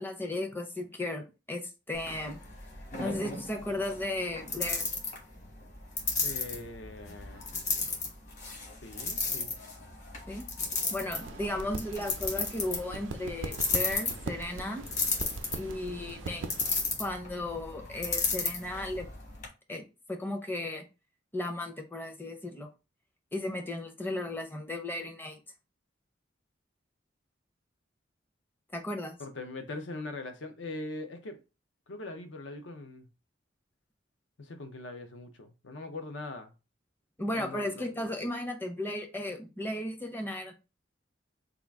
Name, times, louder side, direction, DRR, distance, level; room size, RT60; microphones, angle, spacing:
voice 1, 0.0-2.4 3.0-4.9 10.3-10.5 10.9-14.9 15.5-16.5 17.0-19.1 19.7-19.8 20.1-20.8 21.3-22.7 23.3-25.4 28.7-29.2 37.2-40.5, left 1 dB, 10° left, 0.5 m, -35 dB
sound 1, 1.9-19.5, left 4 dB, 40° left, 1.1 m, -35 dB
voice 2, 6.2-7.5 8.8-9.5 29.2-31.4 31.9-33.1 34.4-36.5 37.2-38.1, left 2 dB, 75° left, 0.6 m, -42 dB
sound 2, 11.1-16.7, right 4 dB, 80° right, 0.4 m, -41 dB
3.6 x 2.3 x 3.4 m
head